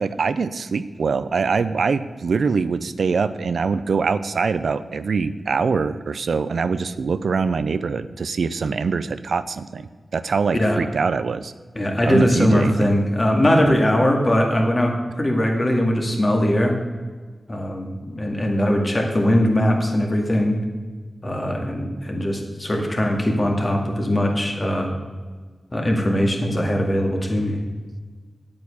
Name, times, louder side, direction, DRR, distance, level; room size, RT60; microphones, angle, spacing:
voice 1, 0.0-11.5 12.0-12.9 13.6-13.8, right 5 dB, 80° right, 13 dB, 0.5 m, -23 dB
voice 2, 11.8-16.7 17.5-20.6 21.2-24.9 25.7-27.6, left 1 dB, 30° left, 1 dB, 2.2 m, -20 dB
8.8 x 8.7 x 7.1 m, 1.4 s
wide cardioid pair, 80°, 0 cm